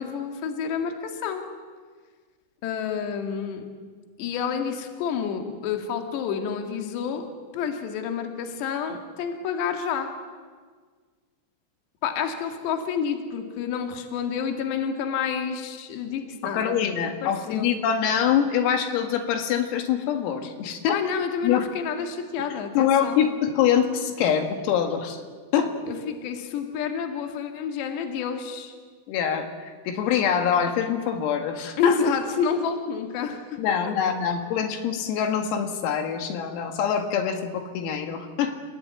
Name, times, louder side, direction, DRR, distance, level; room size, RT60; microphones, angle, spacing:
voice 1, 0.0-1.5 2.6-3.6 4.2-7.3 7.5-10.1 12.0-16.9 17.2-17.7 20.9-23.3 25.9-28.7 31.8-33.6 33.9-34.0, left 6 dB, 60° left, 4 dB, 4.0 m, -29 dB
voice 2, 16.4-21.0 21.4-21.7 22.8-25.2 25.5-25.7 29.1-29.5 29.9-32.0 33.6-38.6, left 8 dB, 80° left, 5 dB, 4.5 m, -24 dB
29.5 x 18.5 x 9.4 m, 1.5 s
omnidirectional pair, 6.0 m